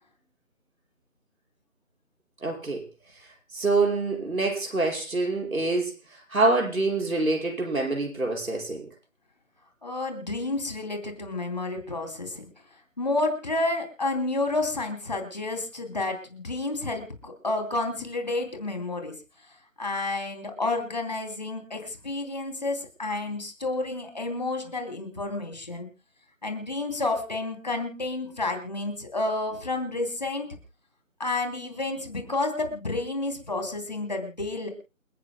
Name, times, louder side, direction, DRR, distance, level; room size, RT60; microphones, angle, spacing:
voice 1, 2.4-2.8 3.5-8.9, right 3 dB, 80° right, 0 dB, 5.6 m, -26 dB
voice 2, 9.8-12.5 13.0-19.1 19.8-25.9 26.4-30.5 31.2-34.7, left 2 dB, 30° left, 5 dB, 2.9 m, -30 dB
28.5 x 10.5 x 2.2 m, 0.31 s
figure-of-eight pair, 175°, 41 cm